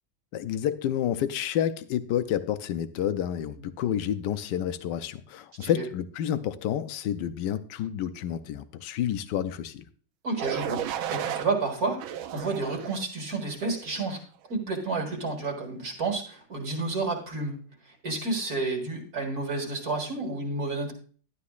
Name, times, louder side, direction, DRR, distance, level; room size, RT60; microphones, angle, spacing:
voice 1, 0.3-9.8, left 10 dB, 70° left, 1.2 m, -29 dB
voice 2, 10.2-14.2 14.5-17.6 17.9-20.9, right 3 dB, 45° right, 2.2 m, -30 dB
sound 1, 10.4-11.5 12.0-13.0 13.6-14.0, right 10 dB, 75° right, 1.4 m, -33 dB
11.5 x 11.5 x 2.4 m
omnidirectional pair, 2.3 m